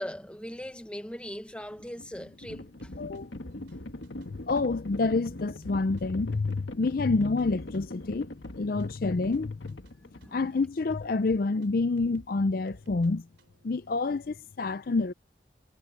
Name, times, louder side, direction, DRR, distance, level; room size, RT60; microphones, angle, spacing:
voice 1, 0.0-2.9 10.0-10.5, equal, 5° left, 1.2 m, -40 dB
Livestock farm animals working animals, 1.6-10.7, left 1 dB, 75° left, 1.9 m, -42 dB
sound 1, 2.4-13.7, right 1 dB, 75° right, 3.0 m, -56 dB
voice 2, 3.0-3.3 4.1-8.3 8.5-9.8 10.3-13.3 13.6-15.1, left 3 dB, 50° left, 0.5 m, -28 dB
head